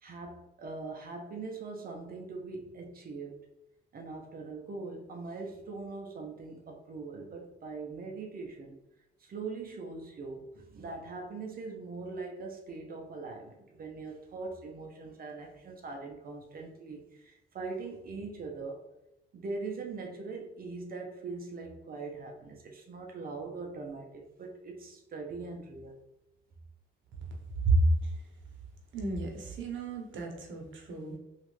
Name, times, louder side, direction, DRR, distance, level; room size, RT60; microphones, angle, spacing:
voice 1, 0.0-3.4 3.9-8.8 9.2-18.8 19.3-26.0, right 3 dB, 45° right, 1 dB, 0.6 m, -41 dB
voice 2, 28.9-31.2, right 2 dB, 75° right, 1 dB, 0.9 m, -30 dB
3.0 x 2.4 x 3.1 m, 0.89 s
cardioid pair, 90°, 20 cm